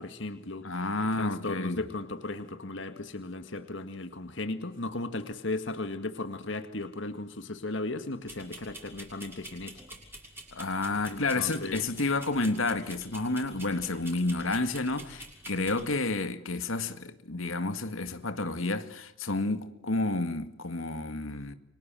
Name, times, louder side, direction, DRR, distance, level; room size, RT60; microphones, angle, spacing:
voice 1, 0.0-0.7 1.2-10.0 11.1-11.8, left 2 dB, 65° left, 1.9 m, -36 dB
voice 2, 0.6-1.8 10.5-21.5, left 2 dB, 80° left, 2.1 m, -30 dB
sound 1, 8.2-15.8, right 2 dB, 10° right, 6.6 m, -47 dB
29.5 x 25.0 x 7.6 m
head